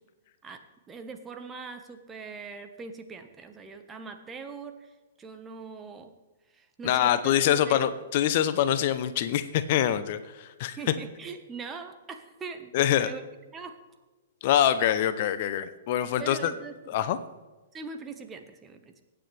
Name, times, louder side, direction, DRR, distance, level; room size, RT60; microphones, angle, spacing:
voice 1, 0.4-4.9 5.2-6.1 6.5-7.9 10.8-12.7 13.0-13.2 13.5-13.7 16.2-16.8 17.7-18.9, right 5 dB, 15° right, 6 dB, 1.4 m, -41 dB
voice 2, 6.8-10.9 12.7-13.1 14.4-16.5 16.9-17.2, left 11 dB, 45° left, 13 dB, 0.8 m, -25 dB
24.0 x 9.1 x 3.4 m, 1.2 s
figure-of-eight pair, 110°, 0 cm